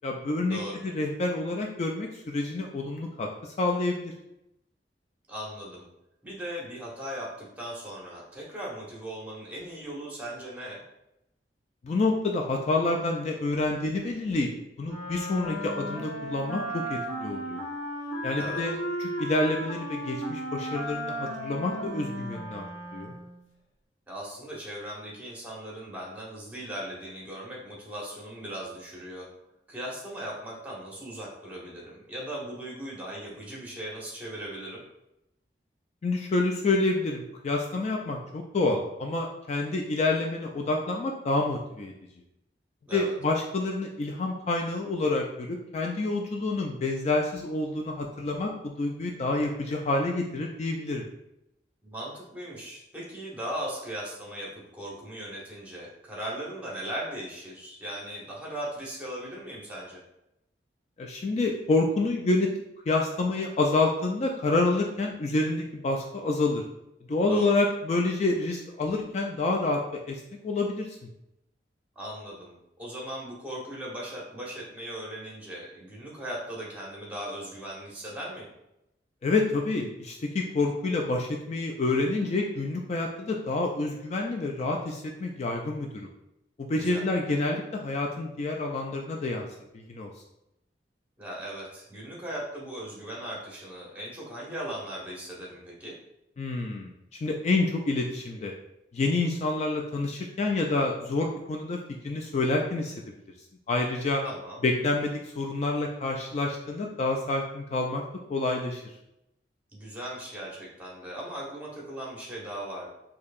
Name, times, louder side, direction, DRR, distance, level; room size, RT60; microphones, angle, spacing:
voice 1, 0.0-3.3 3.6-4.1 11.8-14.5 14.8-17.6 18.2-18.7 19.2-22.7 22.9-23.1 36.0-41.9 42.9-51.0 61.0-62.5 62.9-66.6 67.1-69.8 70.1-70.9 79.2-86.1 86.6-89.5 89.7-90.1 96.4-96.9 97.2-98.5 98.9-101.8 102.0-102.9 103.7-104.2 104.6-108.0 108.3-108.8, left 2 dB, 40° left, 1 dB, 0.3 m, -28 dB
voice 2, 5.3-5.8 6.2-10.8 18.4-18.7 24.1-29.3 29.7-34.8 42.9-43.1 51.8-60.0 67.3-67.5 72.0-78.5 86.8-87.0 91.2-95.9 104.2-104.6 109.7-112.9, right 1 dB, 10° right, -4 dB, 1.0 m, -38 dB
Wind instrument woodwind instrument, 14.8-23.4, equal, 85° left, 1.5 m, -35 dB
4.5 x 2.7 x 2.4 m, 0.86 s
head